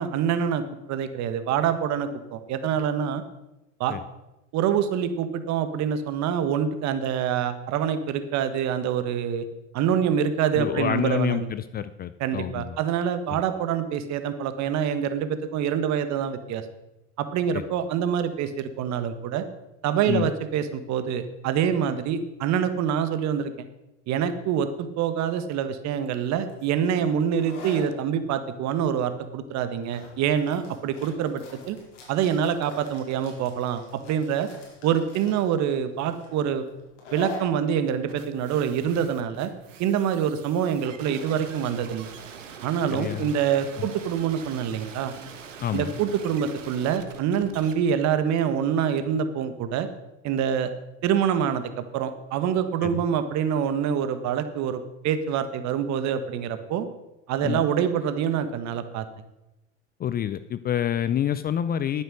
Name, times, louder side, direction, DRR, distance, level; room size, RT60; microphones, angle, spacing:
voice 1, 0.0-3.2 3.8-4.0 4.5-9.4 9.7-11.5 12.2-16.6 17.2-19.4 19.8-23.5 24.1-31.8 32.1-33.8 34.1-34.5 34.8-36.7 37.1-39.5 39.8-42.1 42.6-45.1 45.7-49.9 50.2-50.7 51.0-56.9 57.3-59.1, right 8 dB, 45° right, 11 dB, 1.5 m, -26 dB
voice 2, 10.6-12.8 13.3-13.4 17.5-17.6 20.1-20.3 42.9-43.3 43.8-43.9 45.6-45.9 52.8-53.0 57.4-57.6 60.0-62.0, left 10 dB, 25° left, 14 dB, 0.5 m, -28 dB
sound 1, 26.4-39.9, left 3 dB, 70° left, 4.6 m, -45 dB
sound 2, 38.1-47.7, right 7 dB, 80° right, 1.6 m, -44 dB
11.5 x 9.2 x 6.4 m, 0.97 s
hypercardioid pair, 85°, 37 cm